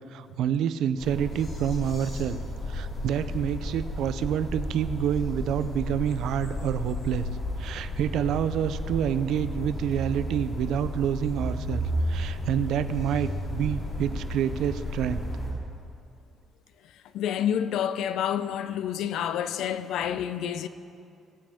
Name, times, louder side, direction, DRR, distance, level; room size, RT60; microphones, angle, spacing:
voice 1, 0.1-2.4 2.7-7.3 7.6-11.8 12.1-15.2, right 9 dB, 75° right, 0.5 m, -28 dB
sound 1, 1.0-15.5, left 1 dB, 45° left, 3.5 m, -33 dB
voice 2, 17.1-20.7, left 9 dB, 80° left, 0.5 m, -28 dB
21.5 x 7.6 x 3.6 m
cardioid pair, 145°, 0 cm